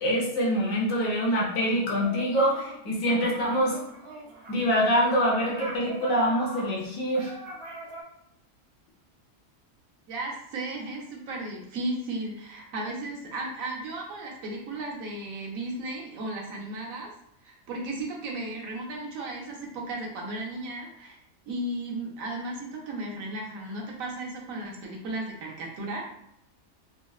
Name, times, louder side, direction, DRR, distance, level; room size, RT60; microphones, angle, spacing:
voice 1, 0.0-3.8 4.5-7.3, equal, 80° left, -4 dB, 1.3 m, -25 dB
sound 1, 2.0-2.8 3.1-8.0, right 1 dB, 55° right, 0.8 m, -42 dB
voice 2, 10.1-17.1 17.4-21.2 21.5-26.1, right 2 dB, 80° right, -1 dB, 1.2 m, -35 dB
3.6 x 2.1 x 2.3 m, 0.78 s
omnidirectional pair, 1.4 m